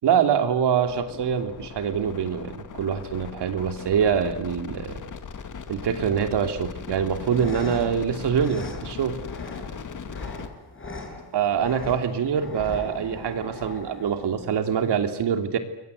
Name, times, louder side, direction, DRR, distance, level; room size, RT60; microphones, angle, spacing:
voice 1, 0.0-5.0 5.7-9.2 11.3-15.6, right 7 dB, 65° right, 7 dB, 3.1 m, -24 dB
sound 1, 0.9-10.5, left 6 dB, 45° left, 2.4 m, -38 dB
sound 2, 7.1-15.1, left 3 dB, 30° left, 6.2 m, -39 dB
29.5 x 22.5 x 8.1 m, 0.82 s
cardioid pair, 120°, 43 cm